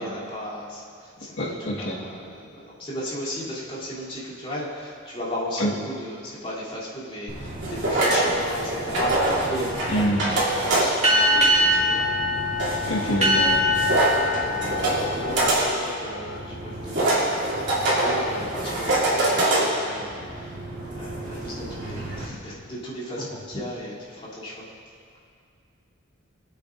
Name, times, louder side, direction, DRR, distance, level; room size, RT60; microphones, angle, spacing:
voice 1, 0.0-12.1 14.4-20.6 20.9-24.7, equal, 30° left, -9 dB, 3.2 m, -35 dB
voice 2, 1.4-2.0 5.6-5.7 9.9-10.2 12.9-13.6 23.2-23.3, equal, 75° left, -5 dB, 1.8 m, -25 dB
sound 1, 7.3-22.3, right 1 dB, 60° right, 3.0 m, -26 dB
sound 2, 11.0-16.1, left 1 dB, 35° right, 2.0 m, -23 dB
25.5 x 8.5 x 2.6 m, 2.2 s
head